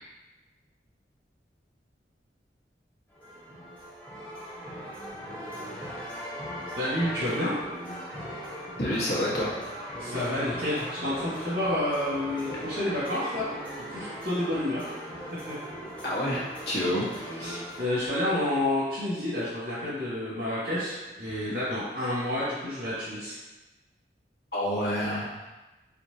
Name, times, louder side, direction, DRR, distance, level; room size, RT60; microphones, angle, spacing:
sound 1, 3.1-17.9, equal, 10° left, 0.9 m, -39 dB
voice 1, 6.7-7.6 10.0-13.5 13.9-14.9 15.5-15.6 17.3-23.4, left 1 dB, 85° right, -11 dB, 1.4 m, -29 dB
voice 2, 8.8-9.5 16.0-17.1 24.5-25.4, equal, 60° left, -6 dB, 1.2 m, -28 dB
4.4 x 3.5 x 2.7 m, 1.1 s
head